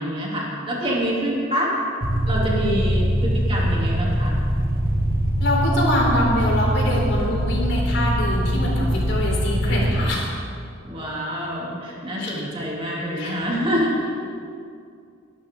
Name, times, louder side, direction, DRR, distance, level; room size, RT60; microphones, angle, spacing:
voice 1, 0.0-1.7 2.3-4.4 10.8-14.0, equal, 30° right, -5 dB, 3.3 m, -26 dB
sound 1, 2.0-10.1, equal, 50° right, 1.7 m, -22 dB
voice 2, 5.4-10.2 12.2-12.3 13.1-13.4, left 1 dB, 65° left, -3 dB, 4.1 m, -24 dB
23.5 x 12.5 x 3.9 m, 2.4 s
head